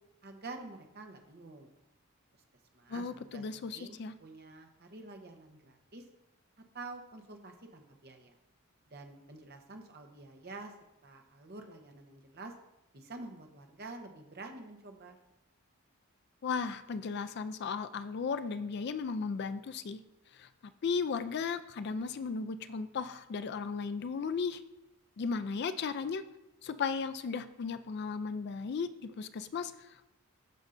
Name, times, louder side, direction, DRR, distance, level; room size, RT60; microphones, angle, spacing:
voice 1, 0.2-1.7 2.7-3.4 3.7-6.0 6.7-8.4 8.9-10.7 11.0-12.5 12.9-15.2, right 3 dB, 45° right, 4 dB, 0.9 m, -48 dB
voice 2, 2.9-4.1 16.4-20.0 20.3-20.5 20.8-24.6 25.2-26.2 26.6-30.1, left 5 dB, 50° left, 12 dB, 0.3 m, -35 dB
13.0 x 5.4 x 2.6 m, 0.89 s
head